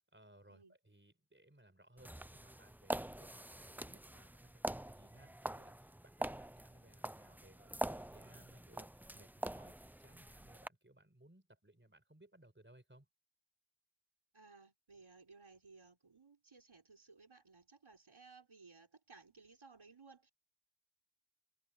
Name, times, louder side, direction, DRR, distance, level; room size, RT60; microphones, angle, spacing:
voice 1, 0.0-13.1, right 1 dB, 20° right, 4.8 m, -64 dB
sound 1, 2.0-10.7, right 1 dB, 5° right, 0.4 m, -45 dB
voice 2, 14.3-20.3, right 4 dB, 70° right, 4.0 m, -60 dB
wide cardioid pair, 60°, 50 cm